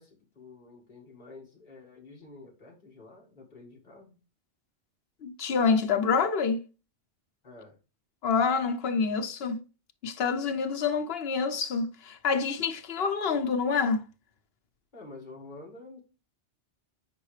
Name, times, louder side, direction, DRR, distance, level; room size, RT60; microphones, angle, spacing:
voice 1, 0.0-4.2 7.4-7.8 14.9-16.0, left 3 dB, 45° left, 2.2 m, -49 dB
voice 2, 5.2-6.6 8.2-9.6 10.0-14.0, left 5 dB, 60° left, 1.0 m, -27 dB
9.4 x 4.8 x 3.3 m
omnidirectional pair, 1.2 m